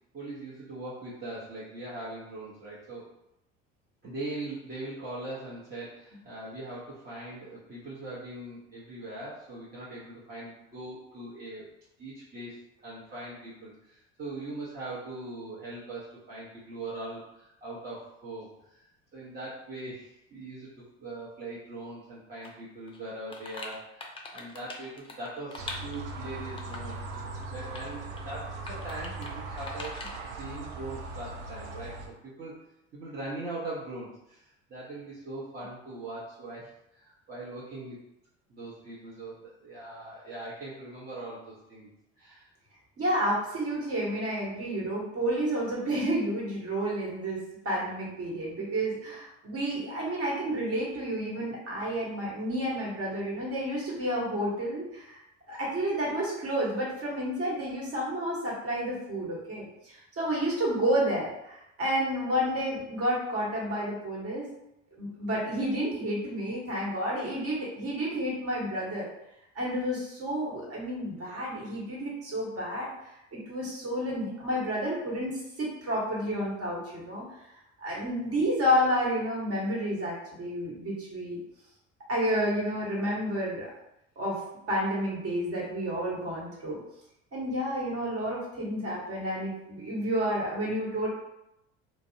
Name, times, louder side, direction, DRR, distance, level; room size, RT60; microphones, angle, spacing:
voice 1, 0.1-3.0 4.0-11.6 12.0-12.6 12.8-18.8 19.1-27.0 27.5-29.9 30.3-32.5 32.9-38.0 38.5-41.9 42.2-42.5, right 2 dB, 25° right, -8 dB, 0.8 m, -41 dB
sound 1, 22.4-22.5 22.9-26.1 26.6-27.0 27.4-27.9 28.2-28.3 28.7-29.3 29.6-30.2, left 3 dB, 15° left, 0.4 m, -42 dB
sound 2, 25.6-32.1, right 2 dB, 65° right, 0.6 m, -39 dB
voice 2, 43.0-55.2 55.5-64.5 65.0-69.1 69.5-72.9 73.3-77.2 77.8-81.4 82.1-83.7 84.2-84.4 84.7-86.8 87.3-91.1, equal, 40° right, -4 dB, 1.2 m, -30 dB
2.5 x 2.0 x 2.6 m, 0.84 s
hypercardioid pair, 70°, 35 cm